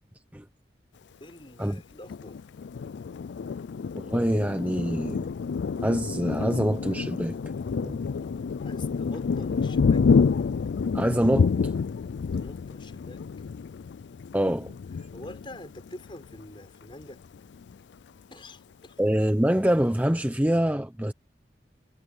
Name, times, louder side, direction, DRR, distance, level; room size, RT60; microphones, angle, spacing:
voice 1, 1.2-2.4 8.6-10.1 12.3-13.2 14.5-14.6 15.1-17.2 18.3-19.0, left 1 dB, 30° left, 6.3 m, -45 dB
Thunder, 2.1-16.4 16.9-17.0 17.3-17.9, left 5 dB, 85° left, 0.4 m, -28 dB
voice 2, 3.9-5.3 5.8-7.3 7.8-8.0 10.9-11.7 14.3-14.7 19.0-21.1, equal, 10° right, 0.8 m, -25 dB
head